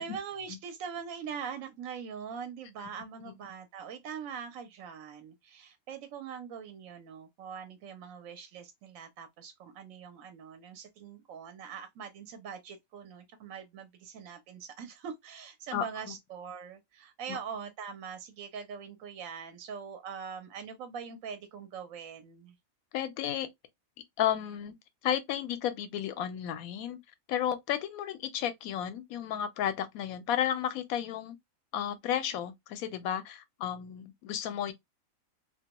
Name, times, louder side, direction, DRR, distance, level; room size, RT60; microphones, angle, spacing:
voice 1, 0.0-22.5, right 6 dB, 70° right, 0.9 m, -42 dB
voice 2, 15.7-16.1 17.3-17.4 22.9-23.5 24.2-24.7 25.0-27.0 27.3-31.4 31.7-34.7, left 10 dB, 80° left, 1.0 m, -33 dB
2.5 x 2.1 x 2.8 m
omnidirectional pair, 1.5 m